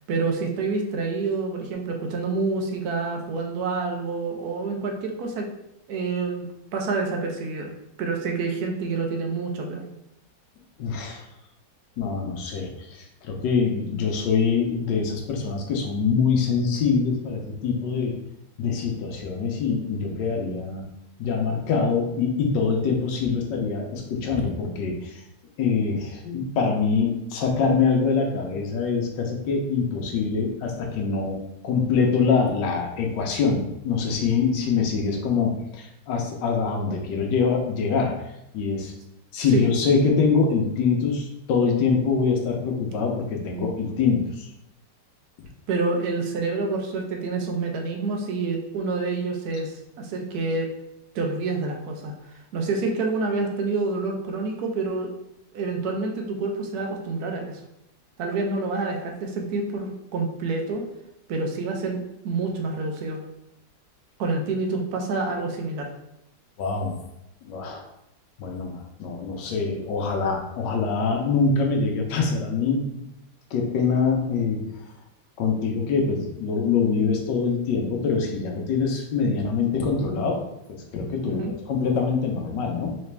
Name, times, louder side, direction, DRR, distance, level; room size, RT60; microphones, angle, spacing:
voice 1, 0.1-5.5 5.9-6.5 6.7-7.7 8.0-9.8 39.5-39.7 45.7-50.7 51.1-52.1 52.5-55.1 55.5-57.6 58.2-60.9 61.3-63.2 64.2-65.9 81.2-81.5, right 3 dB, 70° right, 2 dB, 1.2 m, -27 dB
voice 2, 10.8-11.2 12.0-18.1 18.6-20.9 21.2-25.2 25.6-38.1 38.5-38.9 39.3-44.5 66.6-67.0 67.4-67.9 68.4-73.0 73.5-74.7 75.4-80.4 80.7-83.0, left 5 dB, 85° left, 1 dB, 1.4 m, -24 dB
4.0 x 3.2 x 3.3 m, 0.81 s
omnidirectional pair, 1.9 m